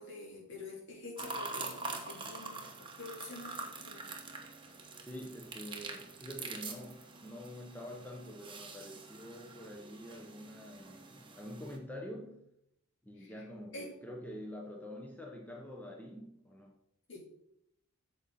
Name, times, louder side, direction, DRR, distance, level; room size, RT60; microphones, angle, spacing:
voice 1, 0.0-2.7 3.0-4.2 13.2-13.4 13.7-13.9 17.1-17.2, left 2 dB, 65° left, -3 dB, 3.8 m, -47 dB
sound 1, 1.2-11.8, right 3 dB, 25° right, 1.3 m, -45 dB
voice 2, 5.0-12.4 13.0-16.8, equal, 10° left, 0 dB, 0.9 m, -46 dB
8.9 x 7.0 x 4.2 m, 0.78 s
head